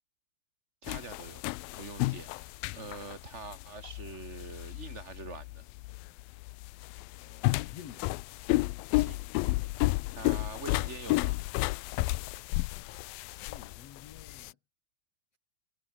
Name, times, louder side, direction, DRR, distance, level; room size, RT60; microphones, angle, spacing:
voice 1, 0.8-1.4 1.8-5.6 9.0-9.3 10.1-11.4, right 3 dB, 15° right, 4.4 m, -44 dB
sound 1, 0.9-14.5, left 21 dB, 90° left, 2.1 m, -32 dB
voice 2, 7.2-8.1 13.4-14.6, left 8 dB, 50° left, 2.1 m, -51 dB
omnidirectional pair, 4.7 m